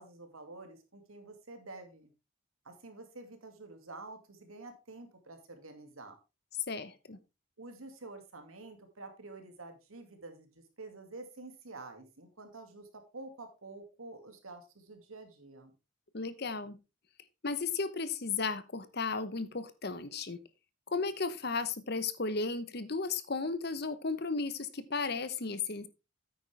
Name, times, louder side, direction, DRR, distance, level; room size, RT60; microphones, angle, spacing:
voice 1, 0.0-2.1 2.6-6.2 7.6-15.7, right 2 dB, 85° right, 6 dB, 2.3 m, -49 dB
voice 2, 6.7-7.2 16.1-16.8 17.4-20.4 20.9-25.9, left 4 dB, 50° left, 13 dB, 0.9 m, -34 dB
9.2 x 9.0 x 3.4 m, 0.27 s
head